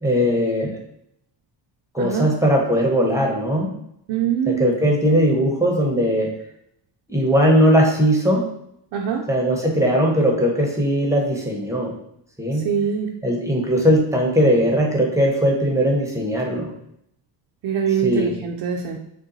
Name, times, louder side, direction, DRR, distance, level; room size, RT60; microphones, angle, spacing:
voice 1, 0.0-0.8 1.9-3.7 4.5-6.3 7.1-8.5 9.3-11.9 12.4-12.7 13.2-16.7 18.0-18.3, equal, 5° right, -1 dB, 0.8 m, -19 dB
voice 2, 2.0-2.3 4.1-4.7 8.9-9.2 12.6-13.1 17.6-19.0, right 7 dB, 70° right, 0 dB, 0.6 m, -23 dB
3.8 x 2.2 x 3.9 m, 0.75 s
cardioid pair, 110°, 43 cm